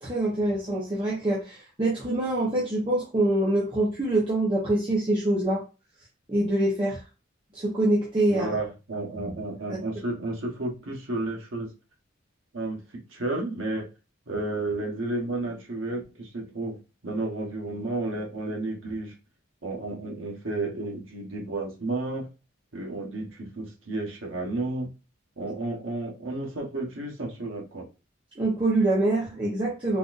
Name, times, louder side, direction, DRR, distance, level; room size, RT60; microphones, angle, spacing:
voice 1, 0.0-5.6 6.3-7.0 7.5-8.5 9.7-9.8 28.4-30.0, right 1 dB, 25° right, -6 dB, 0.8 m, -25 dB
voice 2, 8.3-11.7 12.5-13.9 14.3-16.8 17.0-19.1 19.6-22.3 22.7-24.9 25.4-27.9, right 2 dB, 85° right, 0 dB, 1.1 m, -32 dB
3.9 x 2.5 x 2.4 m, 0.31 s
head